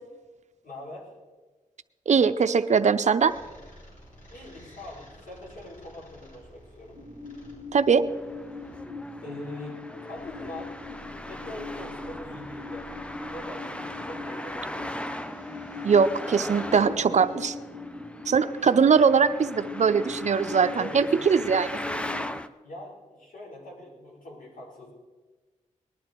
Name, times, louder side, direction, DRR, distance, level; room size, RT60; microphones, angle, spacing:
voice 1, 0.6-1.1 4.3-7.0 9.2-10.8 11.2-14.9 16.9-17.2 18.6-18.8 20.7-21.3 22.6-24.9, left 1 dB, 85° left, -4 dB, 4.6 m, -42 dB
voice 2, 2.1-3.3 7.7-8.0 15.8-17.5 18.3-21.8, right 6 dB, 55° right, 9 dB, 0.6 m, -21 dB
sound 1, 3.3-8.8 10.1-17.5, equal, 65° left, 5.1 m, -51 dB
sound 2, 6.9-22.3, left 3 dB, 30° left, 3.4 m, -40 dB
Traffic noise roadway noise, 8.1-22.5, left 1 dB, 10° left, 0.6 m, -39 dB
19.5 x 11.5 x 4.5 m, 1.3 s
cardioid pair, 70°, 14 cm